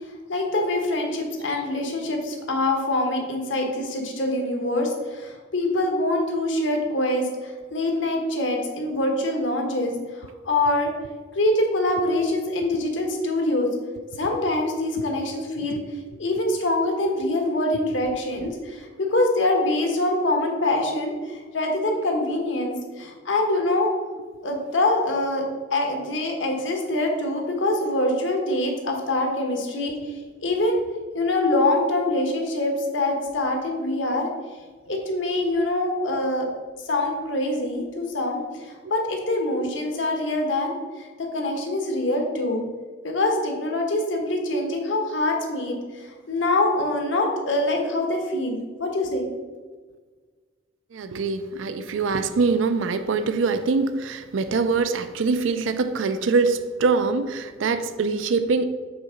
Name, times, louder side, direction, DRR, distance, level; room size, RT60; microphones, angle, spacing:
voice 1, 0.3-10.9 11.3-13.7 14.2-15.8 16.2-23.9 24.4-25.4 25.7-30.8 31.1-34.3 34.9-36.5 36.8-42.6 43.0-49.5, left 1 dB, 70° left, 2 dB, 1.2 m, -24 dB
voice 2, 50.9-58.7, right 4 dB, 80° right, 10 dB, 0.4 m, -24 dB
5.5 x 3.8 x 5.7 m, 1.4 s
head